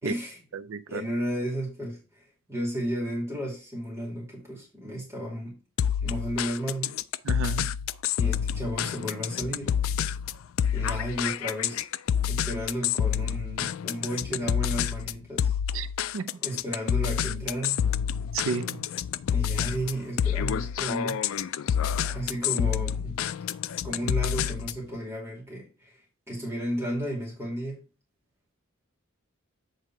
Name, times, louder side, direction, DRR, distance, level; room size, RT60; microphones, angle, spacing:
voice 1, 0.0-0.4 0.9-2.0 2.5-5.6 6.0-7.0 8.2-9.8 10.7-11.8 12.3-15.5 16.4-17.8 19.3-21.2 22.1-23.2 23.8-26.0 26.3-27.8, equal, 15° right, 2.5 m, -33 dB
voice 2, 0.7-1.0 7.2-7.7 15.7-15.9 16.1-16.3 18.3-18.8, right 5 dB, 75° right, 0.5 m, -31 dB
sound 1, 5.8-24.9, left 8 dB, 75° left, 0.3 m, -28 dB
8.2 x 3.6 x 4.5 m
head